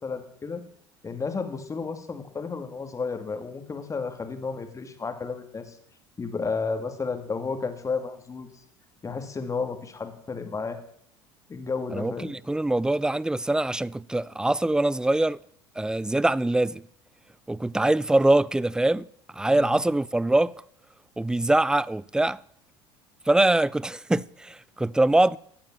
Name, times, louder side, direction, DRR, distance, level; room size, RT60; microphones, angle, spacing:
voice 1, 0.0-0.6 1.0-5.8 6.2-8.5 9.0-10.8 11.5-12.3 19.5-19.7, left 4 dB, 25° left, 2.6 m, -32 dB
voice 2, 11.9-15.4 15.8-16.8 17.5-19.1 19.3-20.6 21.2-22.4 23.3-25.4, right 2 dB, 5° right, 0.5 m, -23 dB
15.5 x 8.8 x 7.5 m
hypercardioid pair, 75°, 13 cm